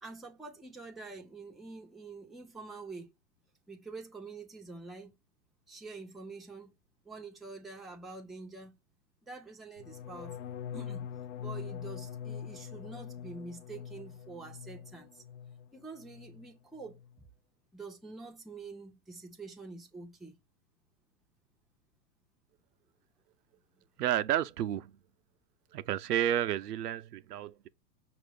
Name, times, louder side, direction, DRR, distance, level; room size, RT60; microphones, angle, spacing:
voice 1, 0.0-3.1 3.7-5.1 5.7-6.7 7.0-8.8 9.3-11.1 11.4-15.2 15.7-17.0 17.7-20.4, right 3 dB, ahead, 0.5 m, -46 dB
sound 1, 9.8-15.7 16.0-16.5 16.8-17.2, left 8 dB, 50° left, 0.5 m, -43 dB
voice 2, 24.0-24.9 25.7-27.7, right 11 dB, 70° right, 0.6 m, -31 dB
5.9 x 2.6 x 3.2 m
figure-of-eight pair, 105°, 50 cm